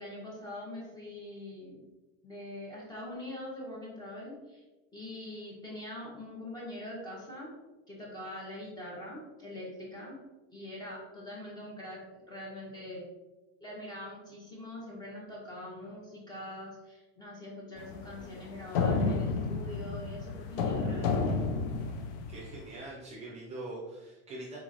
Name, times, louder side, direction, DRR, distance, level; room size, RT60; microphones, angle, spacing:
voice 1, 0.0-1.8 2.2-4.6 4.9-7.5 7.9-10.2 10.5-13.0 13.6-21.4, left 1 dB, 10° left, -4 dB, 0.9 m, -43 dB
sound 1, 17.8-22.6, left 4 dB, 55° left, 0.5 m, -31 dB
voice 2, 22.3-24.6, right 2 dB, 20° right, -4 dB, 0.6 m, -43 dB
3.9 x 3.0 x 2.5 m, 1.1 s
supercardioid pair, 145°, 33 cm